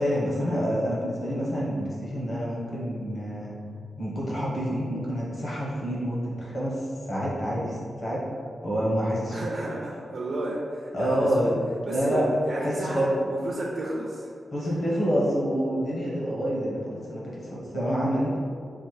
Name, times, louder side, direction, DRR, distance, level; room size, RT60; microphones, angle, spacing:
voice 1, 0.0-3.5 4.0-8.2 8.6-9.4 10.9-11.5 11.9-12.3 12.6-13.2 14.5-18.4, equal, 45° left, -6 dB, 1.1 m, -27 dB
voice 2, 9.3-11.6 11.8-14.3 14.8-14.9, right 1 dB, 50° right, -4 dB, 0.5 m, -32 dB
5.5 x 2.6 x 3.1 m, 2.4 s
wide cardioid pair, 165°, 0 cm